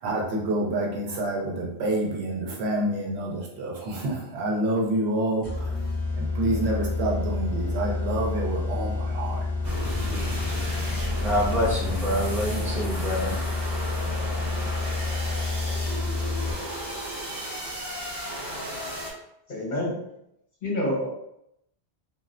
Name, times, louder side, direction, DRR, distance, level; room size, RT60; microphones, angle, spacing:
voice 1, 0.0-5.7 6.1-9.5, right 1 dB, 75° right, -2 dB, 0.9 m, -28 dB
sound 1, 5.4-16.8, left 3 dB, 10° left, 0.8 m, -29 dB
sound 2, 9.6-19.1, equal, 15° right, 1.3 m, -34 dB
voice 2, 10.0-10.9 19.5-20.0 20.6-21.1, left 1 dB, 50° left, -3 dB, 0.9 m, -30 dB
voice 3, 11.2-13.4, equal, 35° right, -6 dB, 1.2 m, -26 dB
3.1 x 2.3 x 2.4 m, 0.79 s
omnidirectional pair, 1.1 m